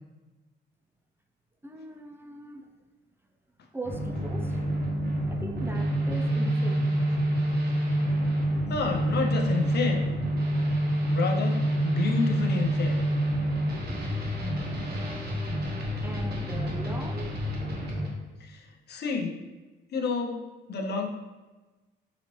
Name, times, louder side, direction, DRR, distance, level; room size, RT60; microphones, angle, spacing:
voice 1, 1.6-2.6 3.7-4.6 5.3-6.9 16.0-17.4, right 2 dB, 10° right, 3 dB, 0.3 m, -39 dB
sound 1, 3.8-18.1, right 1 dB, 55° right, 1.2 m, -27 dB
voice 2, 8.7-10.1 11.1-13.0 18.4-18.6 18.9-19.4 19.9-20.4 20.7-21.1, left 5 dB, 55° left, 3 dB, 0.6 m, -29 dB
4.0 x 3.0 x 3.0 m, 1.2 s
cardioid pair, 90°, 20 cm